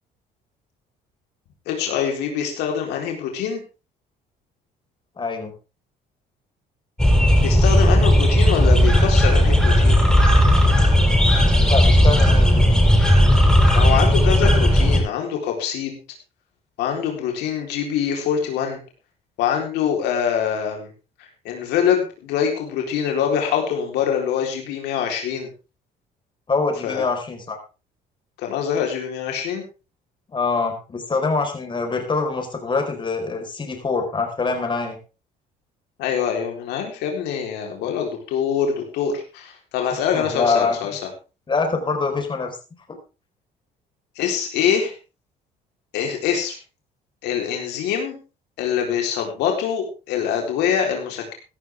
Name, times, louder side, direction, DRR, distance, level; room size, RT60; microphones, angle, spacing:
voice 1, 1.7-3.6 7.4-10.0 13.7-16.0 16.8-18.8 19.4-20.9 21.4-25.5 26.8-27.1 28.4-29.6 36.0-41.0 44.2-44.9 45.9-46.6 47.2-48.2 48.6-51.3, left 8 dB, 90° left, 2 dB, 3.9 m, -24 dB
voice 2, 5.2-5.5 11.7-12.9 26.5-27.6 30.3-35.0 39.9-41.0 41.5-42.6 42.9-43.0, left 4 dB, 30° left, 4 dB, 4.7 m, -24 dB
sound 1, 7.0-15.0, equal, 5° left, 7.0 m, -15 dB
16.0 x 12.5 x 3.6 m, 0.32 s
cardioid pair, 110°, 17 cm